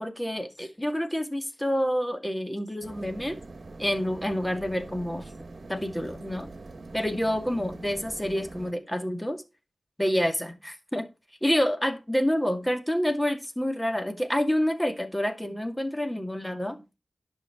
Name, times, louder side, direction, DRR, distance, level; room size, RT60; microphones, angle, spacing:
voice 1, 0.0-3.4 3.8-5.3 5.7-6.5 6.9-9.4 10.0-11.1 11.4-16.8, equal, 10° left, 2.2 m, -28 dB
sound 1, 2.8-8.7, right 3 dB, 65° right, 1.4 m, -44 dB
11.0 x 5.9 x 5.8 m
wide cardioid pair, 60°, 0 cm